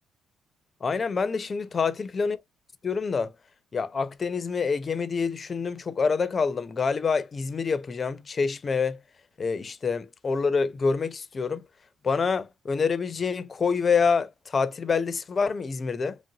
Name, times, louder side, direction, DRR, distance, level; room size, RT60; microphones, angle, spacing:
voice 1, 0.8-2.4 2.8-3.3 3.7-9.0 9.4-11.6 12.0-16.2, left 5 dB, 40° left, 0.5 m, -26 dB
3.1 x 2.6 x 2.7 m
cardioid pair, 90°, 0 cm